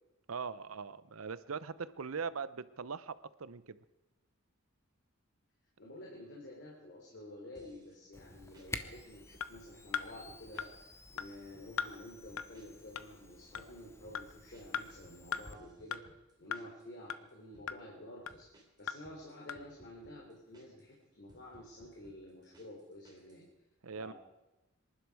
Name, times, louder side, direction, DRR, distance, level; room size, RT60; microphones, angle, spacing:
voice 1, 0.3-3.8 23.8-24.1, right 5 dB, 85° right, 16 dB, 0.7 m, -41 dB
voice 2, 5.8-10.7 11.1-16.1 16.4-18.5 18.8-23.4 24.0-24.1, left 1 dB, 55° left, -2 dB, 3.3 m, -50 dB
sound 1, 7.5-8.0 8.3-8.7 9.3-9.9 10.3-10.9 11.2-11.7 12.3-12.9 13.2-16.9 17.3-17.7 18.3-20.9 21.3-23.4, right 1 dB, 20° right, 3.1 m, -63 dB
Camera, 8.1-15.6, left 2 dB, 15° left, 0.8 m, -50 dB
sound 2, 9.4-9.5 9.9-10.1 10.6-10.7 11.2-11.3 11.8-11.9 12.4-12.5 13.0-13.1 13.5-13.7 14.1-14.3 14.7-14.8 15.3-15.4 15.9-16.0 16.5-16.6 17.1-17.2 17.7-17.8 18.3-18.4 18.9-19.0 19.5-19.6, left 7 dB, 75° left, 0.7 m, -37 dB
26.0 x 11.5 x 4.8 m, 1.0 s
head